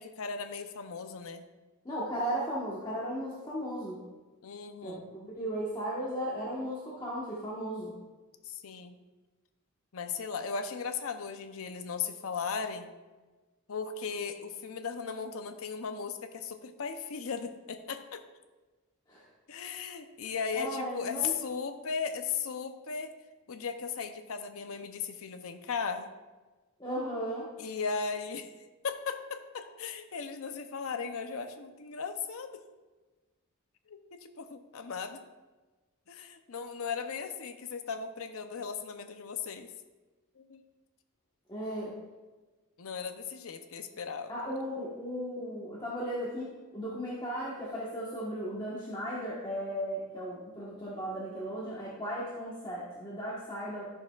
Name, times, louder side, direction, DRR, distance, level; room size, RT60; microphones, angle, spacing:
voice 1, 0.0-1.4 4.4-5.1 8.4-9.0 9.9-12.9 13.7-18.2 19.5-23.1 23.5-26.1 27.6-28.5 28.8-32.6 33.9-35.2 36.1-39.7 40.4-40.6 42.8-44.3, left 5 dB, 70° left, 8 dB, 0.6 m, -37 dB
voice 2, 1.8-4.0 4.8-7.9 19.1-19.2 20.6-21.3 26.8-27.5 41.5-41.9 44.3-53.8, equal, 20° left, -7 dB, 1.2 m, -36 dB
12.0 x 6.4 x 2.4 m, 1.3 s
head